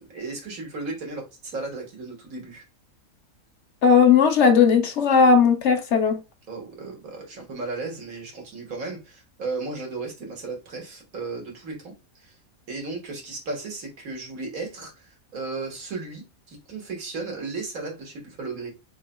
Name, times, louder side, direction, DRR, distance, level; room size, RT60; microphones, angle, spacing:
voice 1, 0.0-2.6 6.5-12.4 12.7-18.7, right 3 dB, 75° right, 1.9 m, -35 dB
voice 2, 3.8-6.2, left 6 dB, 60° left, 1.0 m, -17 dB
4.0 x 3.8 x 2.2 m
omnidirectional pair, 1.5 m